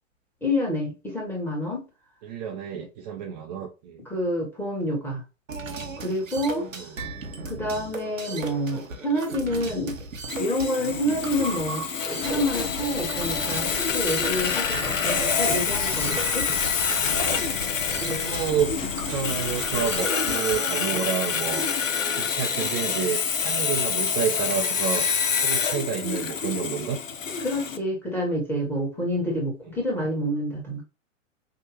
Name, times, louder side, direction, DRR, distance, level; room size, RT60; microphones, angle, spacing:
voice 1, 0.4-1.8 4.0-5.2 6.0-6.7 7.5-10.0 10.4-16.5 18.0-18.2 27.4-30.8, equal, 5° left, 1.5 m, -28 dB
voice 2, 2.2-4.0 6.6-7.0 14.9-15.0 17.9-18.7 19.1-21.7 22.1-25.1 25.4-27.0, right 7 dB, 30° right, 0.7 m, -29 dB
sound 1, 5.5-21.0, right 3 dB, 75° right, 1.1 m, -37 dB
Sawing, 10.3-27.8, left 6 dB, 75° left, 0.7 m, -27 dB
Whispering, 12.2-20.0, left 6 dB, 50° left, 0.9 m, -37 dB
5.8 x 2.4 x 3.1 m
figure-of-eight pair, 110°, 39 cm